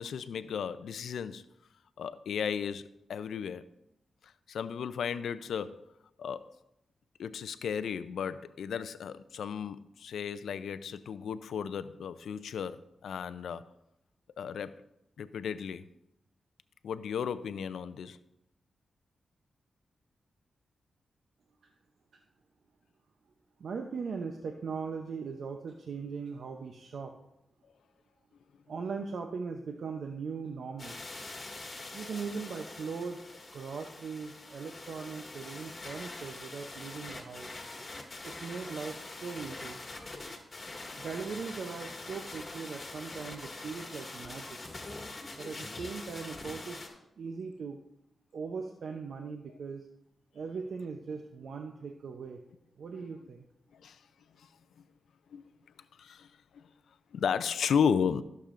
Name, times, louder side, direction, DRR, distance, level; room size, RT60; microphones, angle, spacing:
voice 1, 0.0-1.4 2.0-3.6 4.2-5.8 6.2-6.5 7.2-13.6 14.4-14.7 15.2-15.9 16.8-18.2 53.7-54.0 54.4-54.5 55.3-55.4 56.0-56.3 56.5-56.6 57.1-58.2, left 7 dB, 85° left, 14 dB, 0.4 m, -34 dB
voice 2, 23.6-27.2 28.7-31.0 31.9-33.2 33.5-37.5 38.2-39.8 41.0-44.6 45.4-47.8 48.3-49.9 50.3-52.4 52.8-53.5, right 5 dB, 75° right, 4 dB, 0.6 m, -39 dB
sound 1, 30.8-46.9, left 2 dB, 35° left, 2.0 m, -44 dB
14.5 x 6.8 x 2.5 m, 0.83 s
cardioid pair, 60°, 0 cm